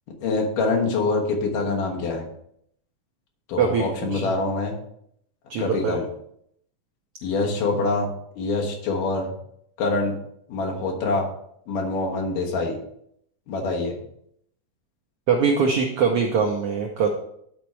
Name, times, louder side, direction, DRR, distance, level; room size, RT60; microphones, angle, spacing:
voice 1, 0.2-2.2 3.5-4.8 5.6-6.0 7.2-8.1 8.4-9.3 9.8-10.2 10.5-11.3 11.7-12.8 13.5-13.9, left 3 dB, 85° left, 0 dB, 3.0 m, -25 dB
voice 2, 5.5-6.0 15.3-17.1, right 6 dB, 85° right, 2 dB, 1.2 m, -22 dB
9.9 x 4.3 x 4.6 m, 0.71 s
omnidirectional pair, 3.7 m